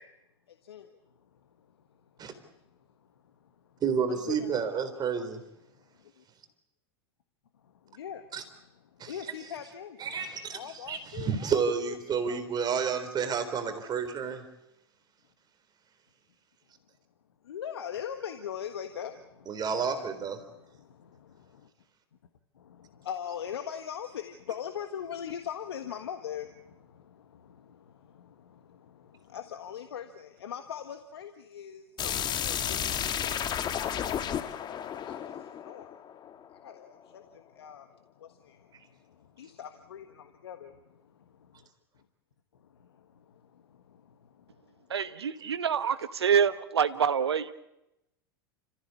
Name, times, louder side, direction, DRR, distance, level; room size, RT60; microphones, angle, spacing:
voice 1, 0.5-4.6 5.7-6.2 7.6-10.2 10.5-12.4 17.4-19.6 20.4-21.7 22.5-34.5 35.0-36.0 36.5-40.7 41.9-42.0 42.5-44.9, left 9 dB, 80° left, 8 dB, 1.5 m, -43 dB
voice 2, 3.8-5.4 8.3-8.4 9.0-9.1 10.0-10.6 10.9-14.4 19.5-20.4, right 6 dB, 30° right, 8 dB, 3.9 m, -30 dB
sound 1, 32.0-36.7, left 9 dB, 35° left, 1.5 m, -32 dB
voice 3, 44.9-47.5, right 7 dB, 85° right, 13 dB, 1.1 m, -26 dB
30.0 x 15.5 x 8.5 m, 0.89 s
hypercardioid pair, 90°, 13 cm